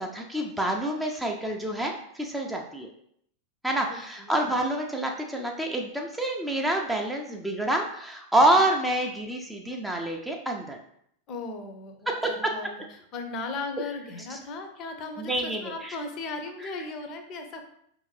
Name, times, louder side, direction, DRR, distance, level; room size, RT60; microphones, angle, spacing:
voice 1, 0.0-2.9 3.6-10.8 12.1-12.5 14.3-14.4 15.2-15.9, right 1 dB, 5° right, 1 dB, 0.5 m, -27 dB
voice 2, 3.9-4.6 11.3-17.6, left 3 dB, 35° left, 5 dB, 0.6 m, -37 dB
4.8 x 2.6 x 3.2 m, 0.70 s
figure-of-eight pair, 90°, 0 cm